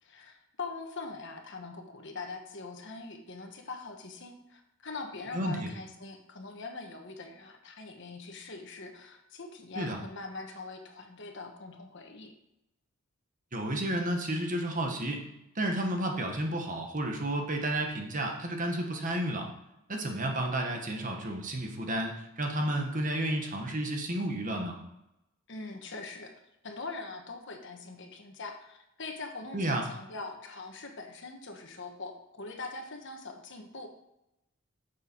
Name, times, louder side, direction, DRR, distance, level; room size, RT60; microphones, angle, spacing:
voice 1, 0.0-12.3 25.5-26.3 26.6-33.9, left 3 dB, 60° left, 4 dB, 1.3 m, -42 dB
voice 2, 5.3-5.7 9.7-10.0 13.5-15.2 15.5-19.5 19.9-24.8 29.5-29.9, right 1 dB, 40° right, 2 dB, 1.4 m, -31 dB
9.1 x 6.8 x 4.5 m, 0.86 s
head